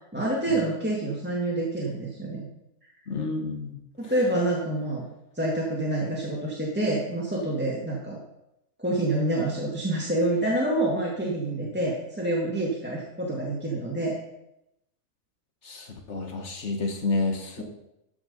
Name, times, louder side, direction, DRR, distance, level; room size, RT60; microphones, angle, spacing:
voice 1, 0.1-2.5 4.0-5.1 5.4-8.2 8.8-14.2, right 1 dB, 5° right, -5 dB, 1.7 m, -27 dB
voice 2, 3.1-3.7 4.0-4.1 11.6-11.7 15.6-17.6, left 3 dB, 50° left, 4 dB, 1.7 m, -30 dB
14.0 x 6.0 x 5.3 m, 0.86 s
omnidirectional pair, 1.6 m